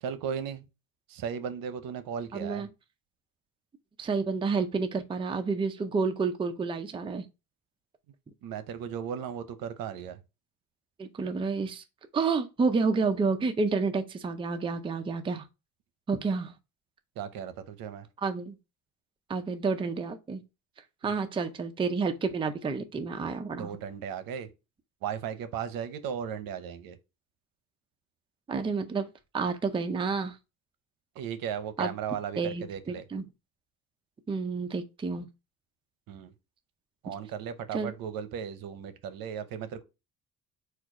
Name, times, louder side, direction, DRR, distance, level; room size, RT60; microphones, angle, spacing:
voice 1, 0.0-0.6 1.1-2.7 8.4-10.2 17.2-18.1 21.0-21.1 23.6-24.5 25.0-27.0 31.2-33.0 36.1-36.3 37.0-39.8, right 8 dB, 80° right, 0.8 m, -36 dB
voice 2, 2.3-2.7 4.0-7.3 11.0-11.8 12.1-15.5 16.1-16.5 18.2-18.6 19.3-20.4 21.0-23.7 28.5-29.1 29.3-30.4 31.8-31.9 32.4-33.2 34.3-35.3 37.7-37.9, right 4 dB, 15° right, 0.4 m, -29 dB
4.3 x 2.3 x 4.7 m
cardioid pair, 140°, 34 cm